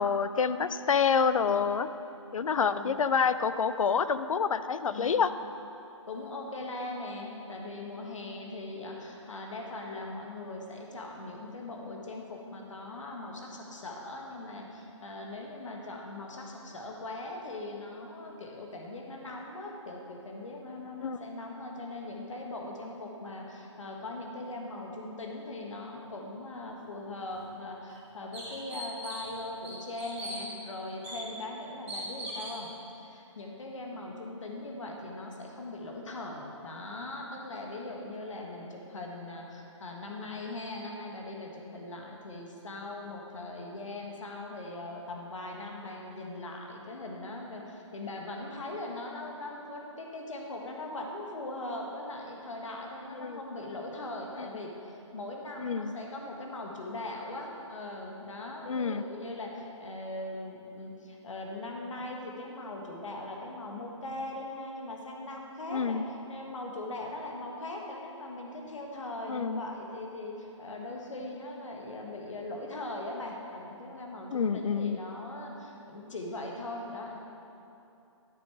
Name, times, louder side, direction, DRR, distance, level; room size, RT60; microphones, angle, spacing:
voice 1, 0.0-1.9 2.3-5.3 21.0-21.2 53.2-53.4 54.4-54.5 55.6-55.9 58.7-59.0 65.7-66.0 69.3-69.6 74.3-75.0, left 6 dB, 85° left, 13 dB, 0.5 m, -27 dB
voice 2, 2.6-3.0 4.9-5.3 6.1-32.7 33.0-66.0 66.3-77.2, left 2 dB, 70° left, 0 dB, 1.5 m, -40 dB
sound 1, 27.3-27.4 27.9-28.0 28.3-29.3 29.6-30.4 31.0-31.2 31.9-32.5, right 1 dB, 10° right, 2.1 m, -40 dB
11.5 x 5.2 x 4.7 m, 2.8 s
hypercardioid pair, 165°, 17 cm